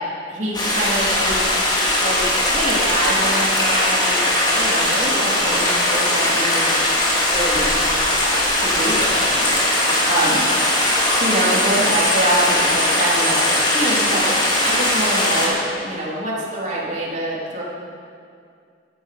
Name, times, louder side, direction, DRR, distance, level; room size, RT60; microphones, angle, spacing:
voice 1, 0.3-1.4 2.0-4.2 4.6-6.7 7.3-7.9 8.6-9.5 10.1-10.5 11.2-14.3 14.6-17.6, right 1 dB, 40° right, -5 dB, 3.8 m, -25 dB
Stream, 0.5-15.5, left 1 dB, 25° left, 3.1 m, -19 dB
14.5 x 11.5 x 6.9 m, 2.3 s
head